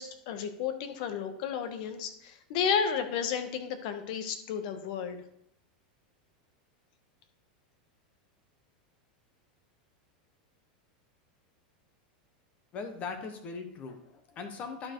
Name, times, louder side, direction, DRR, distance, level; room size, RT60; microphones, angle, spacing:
voice 1, 0.0-5.2, left 7 dB, 55° left, 8 dB, 1.3 m, -32 dB
voice 2, 12.7-14.9, left 5 dB, 30° left, 6 dB, 1.1 m, -40 dB
11.5 x 4.7 x 4.6 m, 0.73 s
supercardioid pair, 150°, 5 cm